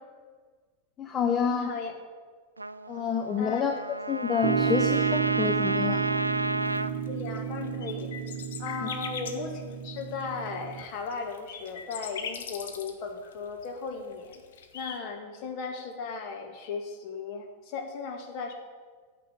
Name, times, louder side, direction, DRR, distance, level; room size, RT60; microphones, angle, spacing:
voice 1, 1.0-1.7 2.9-6.1 8.8-8.9, left 6 dB, 25° left, 5 dB, 0.7 m, -28 dB
voice 2, 1.5-1.9 3.4-3.7 7.0-8.1 8.6-14.4 14.7-18.5, left 5 dB, 40° left, 3 dB, 1.8 m, -36 dB
Trumpet, 2.6-6.9, right 1 dB, 80° right, 0.4 m, -31 dB
sound 1, 4.4-10.8, right 8 dB, 50° right, 0.9 m, -31 dB
sound 2, 6.7-15.0, left 6 dB, 60° left, 1.1 m, -41 dB
9.3 x 6.8 x 8.4 m, 1.5 s
figure-of-eight pair, 90°, 0 cm